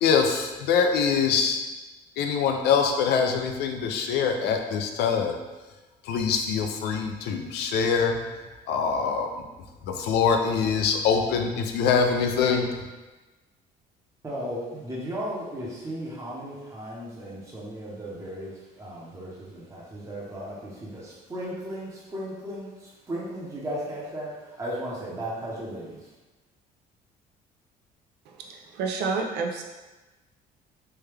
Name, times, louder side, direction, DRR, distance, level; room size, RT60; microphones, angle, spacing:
voice 1, 0.0-1.6 2.2-5.4 6.0-9.5 9.8-12.7, left 6 dB, 75° left, 4 dB, 0.4 m, -24 dB
voice 2, 14.2-26.1, equal, 20° right, -6 dB, 0.8 m, -36 dB
voice 3, 28.3-29.6, right 4 dB, 80° right, 2 dB, 0.5 m, -30 dB
3.3 x 2.2 x 3.3 m, 1.2 s
cardioid pair, 110°, 17 cm